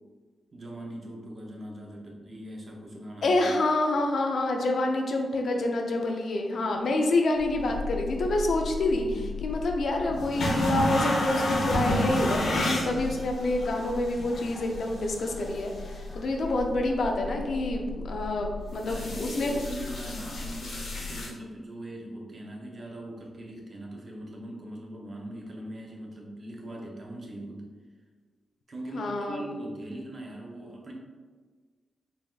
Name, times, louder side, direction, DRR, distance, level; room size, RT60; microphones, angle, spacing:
voice 1, 0.5-3.5 8.7-9.3 18.7-27.7 28.7-30.9, right 1 dB, 35° right, -1 dB, 0.6 m, -41 dB
voice 2, 3.2-9.0 9.4-19.5 28.9-29.4, left 2 dB, 60° left, 2 dB, 0.4 m, -27 dB
sound 1, 7.4-21.3, left 1 dB, 80° left, 1.0 m, -32 dB
4.0 x 3.4 x 2.3 m, 1.5 s
wide cardioid pair, 175°, 0 cm